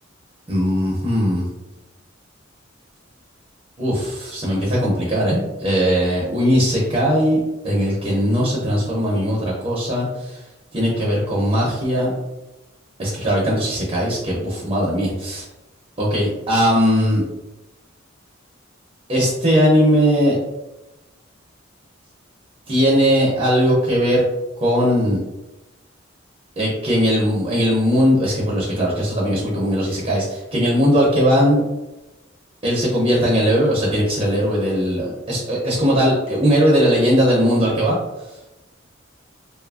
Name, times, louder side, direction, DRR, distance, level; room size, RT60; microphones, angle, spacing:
voice 1, 0.5-1.5 3.8-10.4 10.7-12.2 13.0-15.5 16.0-17.2 19.1-20.4 22.7-24.2 24.6-25.2 26.6-31.6 32.6-38.0, equal, 30° right, -5 dB, 0.5 m, -19 dB
2.6 x 2.4 x 2.4 m, 1.0 s
head